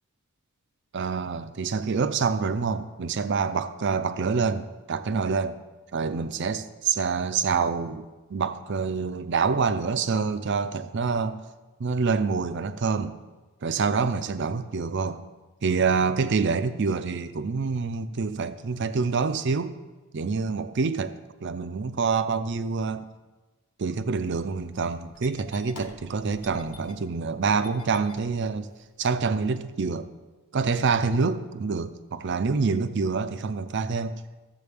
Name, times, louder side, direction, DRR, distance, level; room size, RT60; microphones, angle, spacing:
voice 1, 0.9-5.6 5.9-11.4 11.8-13.2 13.6-15.2 15.6-19.7 20.1-21.1 21.4-23.1 23.8-28.7 29.0-30.1 30.5-34.2, right 5 dB, 50° right, 11 dB, 0.5 m, -26 dB
Engine starting, 24.1-29.0, left 2 dB, 75° left, 1.3 m, -48 dB
14.0 x 7.5 x 3.5 m, 1.2 s
head